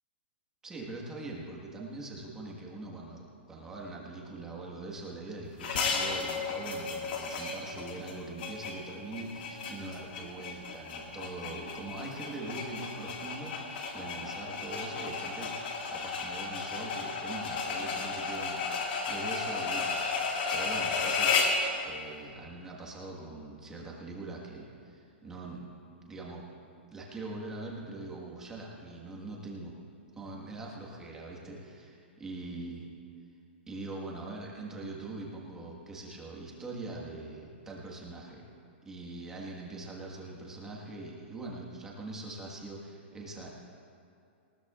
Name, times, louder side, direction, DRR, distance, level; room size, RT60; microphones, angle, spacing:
voice 1, 0.6-15.5 15.9-21.4 21.8-25.6 26.0-26.4 26.9-29.7 30.2-32.9 33.7-38.4 38.8-43.5, right 2 dB, 10° right, -2 dB, 1.5 m, -42 dB
sound 1, 5.6-21.7, left 4 dB, 50° left, 1.9 m, -33 dB
20.0 x 18.0 x 2.4 m, 2.5 s
hypercardioid pair, 170°, 6 cm